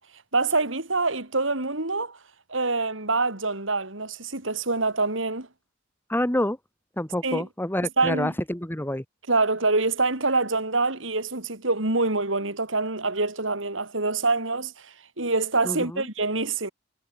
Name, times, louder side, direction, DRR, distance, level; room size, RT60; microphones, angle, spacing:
voice 1, 0.3-2.2 2.5-5.5 7.2-7.4 8.0-8.3 9.3-16.7, right 3 dB, 75° right, 4.2 m, -25 dB
voice 2, 6.1-6.6 7.0-9.0 15.6-16.0, left 1 dB, 10° left, 1.9 m, -27 dB
head